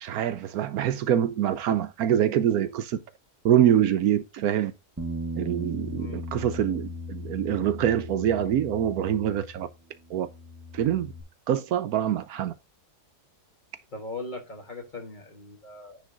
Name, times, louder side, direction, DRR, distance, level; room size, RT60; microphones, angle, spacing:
voice 1, 0.0-3.0 3.4-4.7 5.4-9.7 10.1-10.3 10.7-11.1 11.5-12.5, right 10 dB, 75° right, 1.1 m, -25 dB
Bass guitar, 5.0-9.7 10.0-11.2, left 1 dB, 15° right, 0.5 m, -37 dB
voice 2, 5.9-6.3 13.9-16.0, left 2 dB, 30° left, 1.6 m, -39 dB
9.8 x 3.7 x 3.9 m
omnidirectional pair, 1.6 m